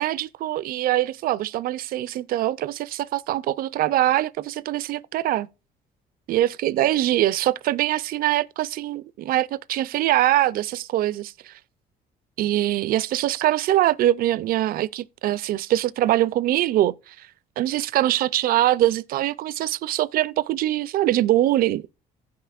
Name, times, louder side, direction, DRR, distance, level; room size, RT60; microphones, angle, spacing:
voice 1, 0.0-5.5 6.3-11.5 12.4-17.1 17.6-21.9, right 14 dB, 60° right, 0.4 m, -23 dB
16.0 x 5.7 x 2.4 m
cardioid pair, 110°, 17 cm